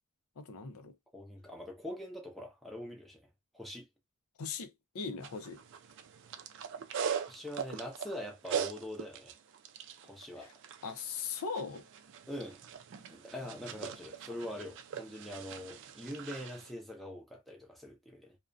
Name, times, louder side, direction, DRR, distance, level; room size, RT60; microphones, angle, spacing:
voice 1, 0.4-0.9 4.4-5.6 10.4-10.5 10.8-11.9, left 5 dB, 80° left, 0.5 m, -39 dB
voice 2, 1.1-3.3 3.5-3.9 7.3-9.3 10.0-10.5 12.3-12.6 13.1-18.4, left 1 dB, ahead, 0.6 m, -43 dB
sound 1, 5.2-16.7, right 7 dB, 55° right, 0.4 m, -41 dB
2.4 x 2.1 x 2.5 m
head